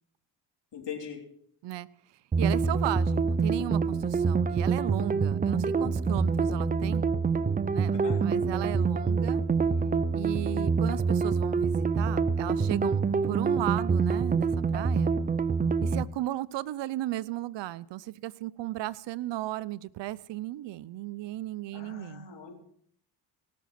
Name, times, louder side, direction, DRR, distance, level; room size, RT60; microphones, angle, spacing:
voice 1, 0.7-1.2 7.9-8.2 21.7-22.5, left 6 dB, 60° left, 1 dB, 3.5 m, -40 dB
sound 1, 2.3-16.0, right 5 dB, 20° right, 0.5 m, -26 dB
voice 2, 2.4-7.1 7.7-9.4 10.1-15.1 15.8-22.3, right 15 dB, 60° right, 18 dB, 0.7 m, -35 dB
18.0 x 6.3 x 5.9 m, 0.66 s
cardioid pair, 80°, 48 cm